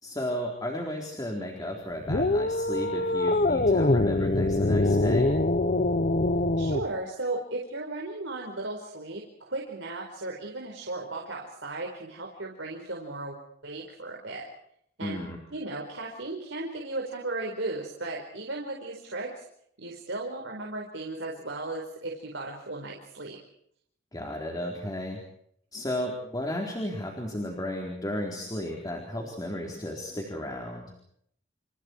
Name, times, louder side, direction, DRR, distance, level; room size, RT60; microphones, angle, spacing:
voice 1, 0.0-5.4 15.0-15.4 24.1-25.2 25.7-30.9, left 1 dB, 20° left, 0 dB, 4.0 m, -34 dB
sound 1, 2.1-6.9, left 2 dB, 45° left, 1.1 m, -24 dB
voice 2, 6.6-14.4 15.0-15.2 15.5-19.4 19.8-23.4, right 2 dB, 85° right, -1 dB, 4.9 m, -36 dB
29.5 x 29.0 x 4.7 m, 0.69 s
head